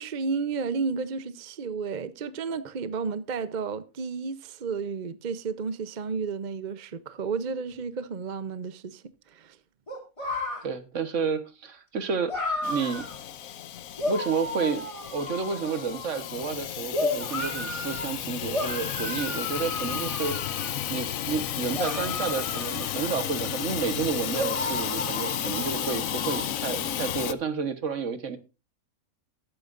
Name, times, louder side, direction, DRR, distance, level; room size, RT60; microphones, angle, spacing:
voice 1, 0.0-9.6, right 5 dB, 40° right, 0.7 m, -32 dB
sound 1, 9.9-10.6 12.3-13.1 14.0-16.5 16.9-18.1 18.5-20.9 21.7-23.7 24.3-26.5, left 2 dB, 20° left, 3.4 m, -33 dB
voice 2, 10.6-12.3 12.6-13.1 14.0-14.9 15.1-28.4, right 5 dB, 60° right, 1.5 m, -31 dB
Hiss / Toilet flush / Trickle dribble, 12.6-27.3, left 10 dB, 70° left, 1.1 m, -33 dB
14.0 x 12.0 x 2.5 m
omnidirectional pair, 1.5 m